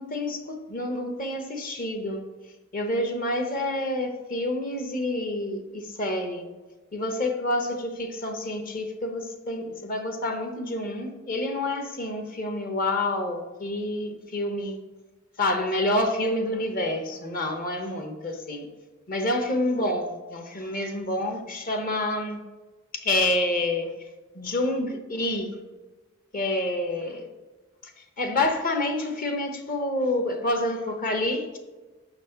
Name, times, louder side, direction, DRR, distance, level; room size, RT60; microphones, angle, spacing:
voice 1, 0.0-2.2 2.7-6.4 6.9-14.8 15.4-18.7 19.1-22.4 22.9-24.0 24.3-25.5 26.3-27.3 27.8-31.6, left 1 dB, 40° left, 5 dB, 0.8 m, -28 dB
6.2 x 4.1 x 5.6 m, 1.2 s
head